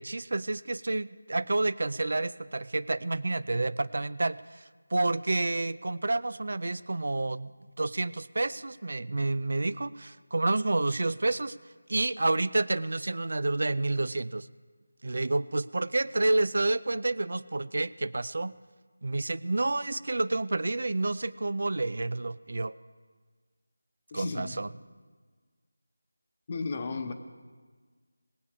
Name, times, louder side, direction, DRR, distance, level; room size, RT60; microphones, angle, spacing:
voice 1, 0.0-4.6 4.9-7.5 7.8-11.6 11.9-14.5 15.0-18.5 19.0-22.7 24.1-24.7, right 2 dB, 65° right, 17 dB, 0.4 m, -29 dB
voice 2, 24.1-24.6 26.5-27.1, left 4 dB, 30° left, 7 dB, 0.9 m, -34 dB
19.5 x 8.3 x 4.9 m, 1.5 s
figure-of-eight pair, 170°, 0 cm